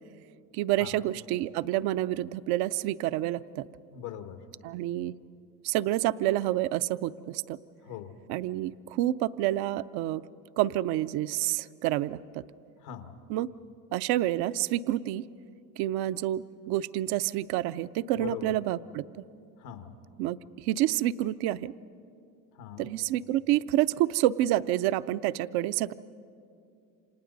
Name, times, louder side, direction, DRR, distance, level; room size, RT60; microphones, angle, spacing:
voice 1, 0.5-3.7 4.6-5.1 5.6-7.6 8.3-10.2 10.6-12.4 13.3-13.5 13.9-15.2 15.8-19.2 20.2-21.7 22.8-25.9, right 14 dB, 55° right, 14 dB, 0.6 m, -28 dB
voice 2, 3.9-4.5 7.8-8.1 12.8-13.1 18.2-18.6 19.6-19.9 22.6-22.9, left 10 dB, 80° left, 7 dB, 1.7 m, -41 dB
29.0 x 26.5 x 4.0 m, 2.5 s
supercardioid pair, 90°, 46 cm